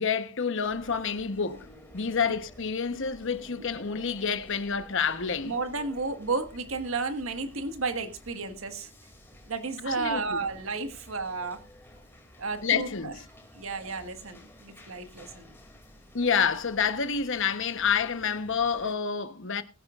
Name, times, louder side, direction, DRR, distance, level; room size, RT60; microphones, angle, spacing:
voice 1, 0.0-1.7 1.9-5.5 9.8-10.4 12.6-13.2 16.1-19.6, left 6 dB, 60° left, 1.0 m, -28 dB
sound 1, 0.6-18.9, left 1 dB, 10° left, 2.5 m, -52 dB
voice 2, 5.4-8.9 9.5-11.6 12.4-13.1 13.5-15.5, right 3 dB, 70° right, 1.6 m, -32 dB
21.5 x 10.0 x 2.4 m
head